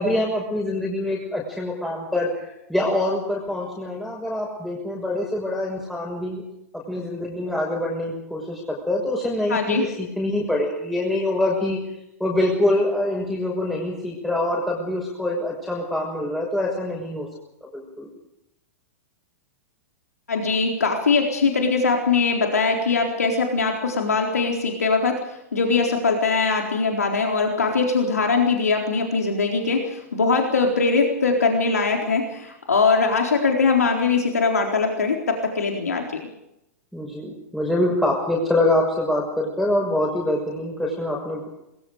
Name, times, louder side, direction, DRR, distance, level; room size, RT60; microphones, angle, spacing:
voice 1, 0.0-6.4 6.7-11.8 12.2-17.3 17.6-18.1 36.9-41.5, left 1 dB, 5° left, -3 dB, 6.2 m, -25 dB
voice 2, 9.5-9.9 20.3-36.2, left 4 dB, 75° left, 2 dB, 4.0 m, -21 dB
27.0 x 21.5 x 5.1 m, 0.85 s
figure-of-eight pair, 100°, 8 cm